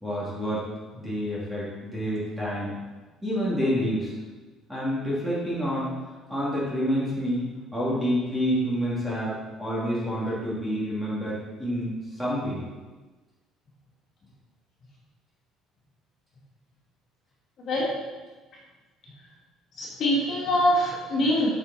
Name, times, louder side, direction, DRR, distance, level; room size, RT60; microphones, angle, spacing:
voice 1, 0.0-0.6 1.0-2.7 3.2-4.1 4.7-5.9 6.3-9.3 9.6-12.7, equal, 5° right, -8 dB, 2.8 m, -28 dB
voice 2, 19.8-21.5, left 1 dB, 45° left, -5 dB, 2.5 m, -24 dB
8.7 x 6.3 x 4.2 m, 1.3 s
cardioid pair, 150°, 0 cm